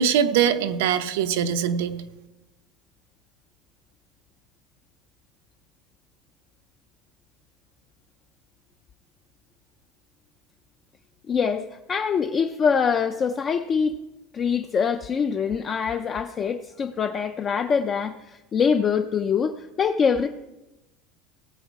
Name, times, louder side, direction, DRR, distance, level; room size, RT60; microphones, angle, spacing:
voice 1, 0.0-2.0, right 8 dB, 85° right, 10 dB, 0.9 m, -22 dB
voice 2, 11.3-14.0 14.3-20.3, left 6 dB, 20° left, 7 dB, 0.4 m, -24 dB
17.5 x 7.2 x 4.7 m, 1.0 s
cardioid pair, 180°, 0 cm